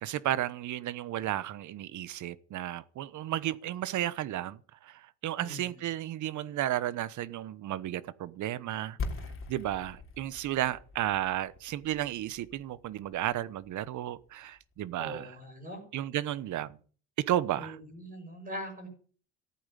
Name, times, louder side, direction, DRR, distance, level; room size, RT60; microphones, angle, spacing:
voice 1, 0.0-9.0 9.5-15.4 15.9-16.8 17.2-17.8, right 13 dB, 50° right, 1.0 m, -33 dB
sound 1, 9.0-14.7, left 3 dB, 35° left, 3.2 m, -42 dB
voice 2, 15.0-15.8 17.6-18.9, equal, 20° right, 5.4 m, -41 dB
14.5 x 8.7 x 8.5 m
cardioid pair, 125°, 37 cm